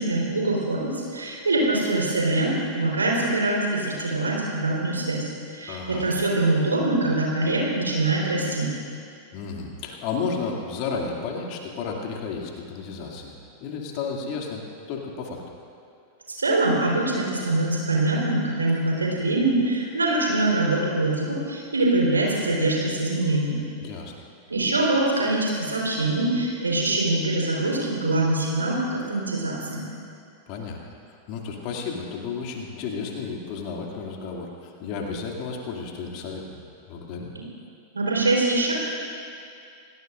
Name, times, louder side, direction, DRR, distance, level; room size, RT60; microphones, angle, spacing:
voice 1, 0.0-8.7 16.3-23.6 24.5-29.8 37.9-38.7, right 2 dB, 75° right, -3 dB, 4.2 m, -24 dB
voice 2, 5.7-6.1 9.3-13.3 13.6-14.6 14.9-15.4 23.8-24.1 30.5-30.8 31.1-36.6 36.9-37.3, left 5 dB, 45° left, 0 dB, 2.7 m, -32 dB
29.0 x 18.5 x 2.6 m, 2.5 s
figure-of-eight pair, 90°, 0 cm